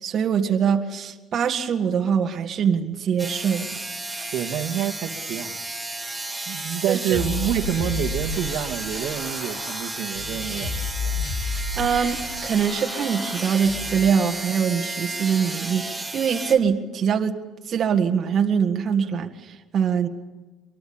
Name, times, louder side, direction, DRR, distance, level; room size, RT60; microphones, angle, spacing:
voice 1, 0.0-3.8 6.9-7.2 11.3-17.4 17.7-20.1, right 7 dB, 40° right, 4 dB, 1.8 m, -23 dB
sound 1, 3.2-16.5, right 2 dB, 5° right, 3.0 m, -33 dB
voice 2, 4.3-5.5 6.5-10.7, right 10 dB, 70° right, 4 dB, 1.9 m, -27 dB
sound 2, 7.1-14.1, left 4 dB, 85° left, 6.2 m, -32 dB
24.5 x 21.5 x 8.8 m, 1.2 s
cardioid pair, 135°, 0 cm